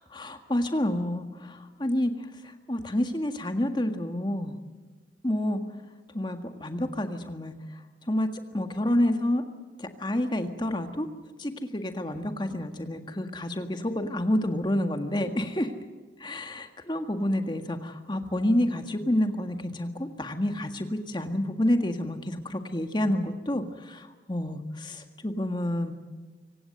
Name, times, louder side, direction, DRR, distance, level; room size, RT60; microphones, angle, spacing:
voice 1, 0.1-4.5 5.2-5.6 6.1-7.5 8.1-8.3 8.5-9.4 9.8-11.1 11.4-15.7 16.2-25.9, left 1 dB, 25° left, 7 dB, 1.7 m, -29 dB
25.5 x 17.5 x 7.9 m, 1.3 s
head